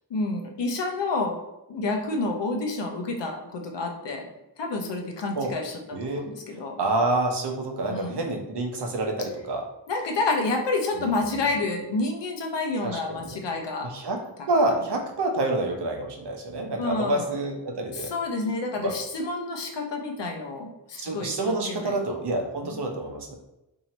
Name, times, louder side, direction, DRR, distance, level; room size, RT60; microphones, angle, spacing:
voice 1, 0.1-1.4 1.7-4.3 4.6-6.8 7.9-8.2 9.9-13.9 16.8-17.4 17.9-22.0 22.6-22.7, left 3 dB, 75° left, 2 dB, 0.8 m, -29 dB
voice 2, 5.9-6.2 6.8-9.6 12.8-13.4 13.8-14.2 14.5-18.1 18.8-18.9 21.0-23.4, right 2 dB, 70° right, 3 dB, 0.8 m, -27 dB
2.8 x 2.7 x 4.1 m, 0.93 s
wide cardioid pair, 120°, 43 cm